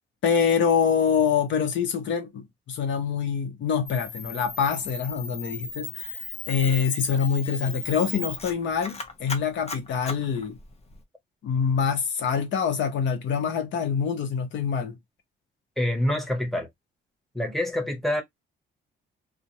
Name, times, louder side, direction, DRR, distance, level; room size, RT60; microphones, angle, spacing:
voice 1, 0.2-10.6 11.4-14.9, left 6 dB, 70° left, 0.8 m, -25 dB
Camera, 3.9-11.0, left 4 dB, 30° left, 0.7 m, -36 dB
voice 2, 15.8-16.7 17.3-18.2, left 1 dB, ahead, 0.9 m, -26 dB
2.4 x 2.0 x 2.8 m
cardioid pair, 90°, 20 cm